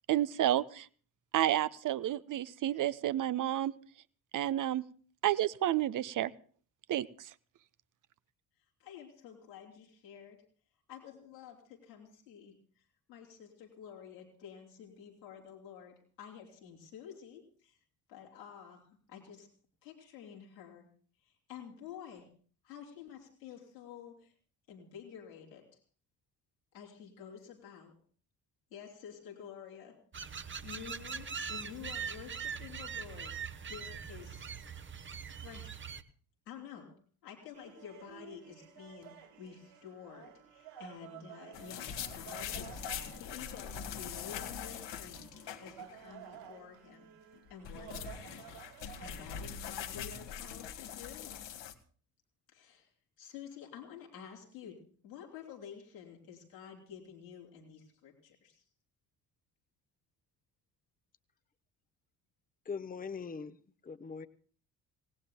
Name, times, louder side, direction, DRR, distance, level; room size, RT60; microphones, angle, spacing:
voice 1, 0.1-0.9 1.3-3.7 4.3-4.8 5.2-6.3 6.9-7.3, right 12 dB, 40° right, 15 dB, 0.7 m, -30 dB
voice 2, 8.8-10.4 10.9-17.8 18.1-19.5 19.8-20.9 21.2-22.3 22.6-24.3 24.7-25.8 26.7-27.9 28.7-30.0 30.3-33.4 33.7-34.5 35.3-35.9 36.5-45.3 45.6-47.1 47.5-48.5 49.0-51.4 52.5-52.9 53.2-58.6, left 8 dB, 80° left, -3 dB, 3.4 m, -50 dB
sound 1, 30.1-36.0, right 6 dB, 25° right, 1.0 m, -42 dB
sound 2, 37.5-49.4, right 9 dB, 60° right, 3.1 m, -53 dB
sound 3, 41.5-46.0 46.3-46.4 47.3-51.7, left 8 dB, 55° left, 1.6 m, -42 dB
voice 3, 62.6-63.6 63.8-64.3, left 5 dB, 15° left, 11 dB, 0.9 m, -41 dB
27.0 x 18.5 x 2.2 m, 0.44 s
figure-of-eight pair, 45°, 50 cm